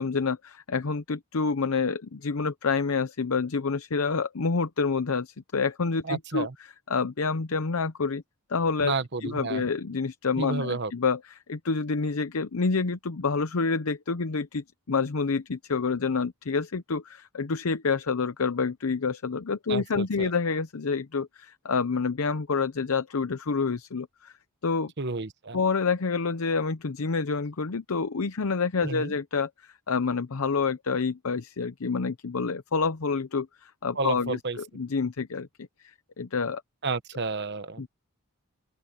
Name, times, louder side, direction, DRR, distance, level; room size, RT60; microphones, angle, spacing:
voice 1, 0.0-6.5 6.9-8.2 8.5-8.9 9.2-24.3 24.6-24.9 25.5-35.7 36.2-36.6 37.8-37.9, left 4 dB, 70° left, 0.7 m, -28 dB
voice 2, 6.0-6.5 8.8-9.6 10.4-10.9 19.7-20.3 25.0-25.6 28.8-29.1 34.0-34.6 36.8-37.9, right 3 dB, 50° right, 1.1 m, -31 dB
open air
head